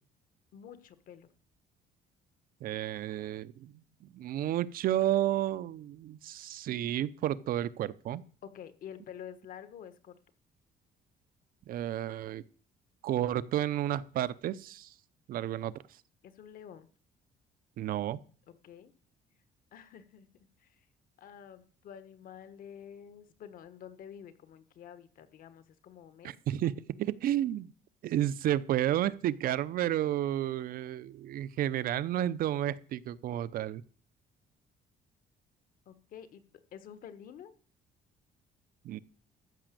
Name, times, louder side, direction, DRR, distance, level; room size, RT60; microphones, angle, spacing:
voice 1, 0.5-1.3 8.4-10.1 16.2-16.9 18.5-18.9 19.7-20.3 20.6-20.9 21.2-26.3 35.8-36.4 36.7-37.5, left 9 dB, 55° left, 13 dB, 1.4 m, -49 dB
voice 2, 2.6-3.7 4.1-8.2 11.7-12.4 13.0-14.9 15.3-15.7 17.8-18.2 26.2-26.7 27.0-27.7 28.0-33.8 38.8-39.0, right 12 dB, 60° right, 16 dB, 0.6 m, -31 dB
14.0 x 6.1 x 7.6 m, 0.42 s
cardioid pair, 160°, 17 cm